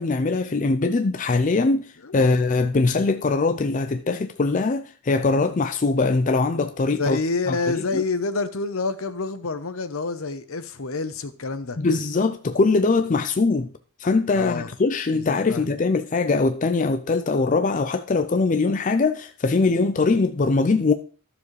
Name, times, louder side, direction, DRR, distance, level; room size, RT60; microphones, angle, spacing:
voice 1, 0.0-7.2 7.5-8.0 11.8-13.7 14.0-20.9, left 3 dB, 35° left, 0.4 m, -22 dB
voice 2, 7.0-11.8 14.3-14.7 15.1-15.7, left 3 dB, 75° left, 0.8 m, -28 dB
12.0 x 7.0 x 3.2 m
head